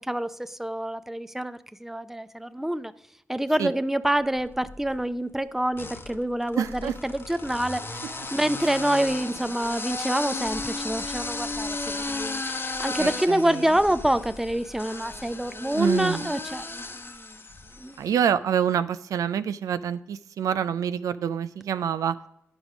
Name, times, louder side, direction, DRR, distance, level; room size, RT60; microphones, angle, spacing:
voice 1, 0.1-2.9 3.3-7.8 8.3-17.3 17.8-17.9, right 1 dB, 5° right, 12 dB, 0.5 m, -27 dB
sound 1, 4.4-5.0 5.7-18.0, left 3 dB, 40° left, 0.9 m, -35 dB
voice 2, 6.6-7.0 8.6-8.7 13.0-13.7 15.7-16.3 18.0-22.2, right 8 dB, 80° right, 13 dB, 0.4 m, -27 dB
9.8 x 5.3 x 4.9 m, 0.78 s
supercardioid pair, 45°, 6 cm